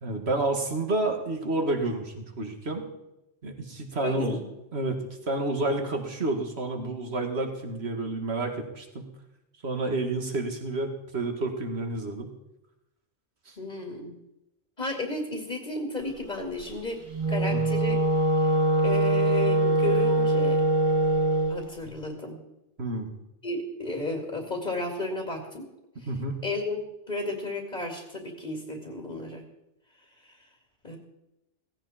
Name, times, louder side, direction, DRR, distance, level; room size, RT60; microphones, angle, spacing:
voice 1, 0.0-2.8 3.4-4.4 4.7-5.0 5.3-9.1 9.6-12.3 13.5-13.6 17.5-17.6 22.8-23.1 26.0-26.4, right 2 dB, 55° right, 4 dB, 2.4 m, -30 dB
voice 2, 4.0-4.5 13.6-14.2 14.8-17.0 17.3-18.0 18.4-18.5 18.8-20.6 21.5-22.4 23.4-25.7 26.0-26.1 26.4-26.8 27.1-29.4 30.3-30.4 30.8-31.0, left 2 dB, 35° left, 2 dB, 2.6 m, -33 dB
Wind instrument woodwind instrument, 17.1-21.6, right 1 dB, 25° right, 1.4 m, -23 dB
17.5 x 16.0 x 4.3 m, 0.90 s
omnidirectional pair, 1.3 m